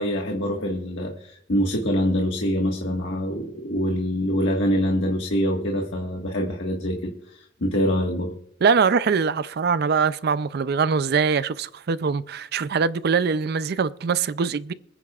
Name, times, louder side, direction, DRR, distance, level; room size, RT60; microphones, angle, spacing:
voice 1, 0.0-8.3, equal, 75° left, 1.6 m, -25 dB
voice 2, 8.6-14.7, right 5 dB, 60° right, 0.4 m, -22 dB
25.5 x 9.9 x 2.4 m
head